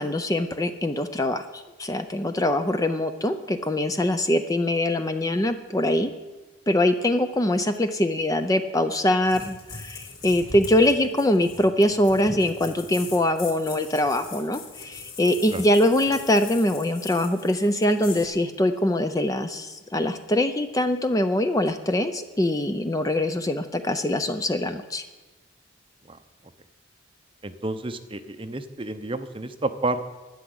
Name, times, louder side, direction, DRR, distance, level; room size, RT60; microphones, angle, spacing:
voice 1, 0.0-6.1 6.7-25.0, left 1 dB, 15° left, 8 dB, 0.5 m, -23 dB
sound 1, 9.2-18.3, left 4 dB, 75° left, 3.5 m, -41 dB
voice 2, 27.4-30.1, right 2 dB, 25° right, 9 dB, 0.7 m, -30 dB
12.0 x 9.9 x 7.8 m, 1.2 s
head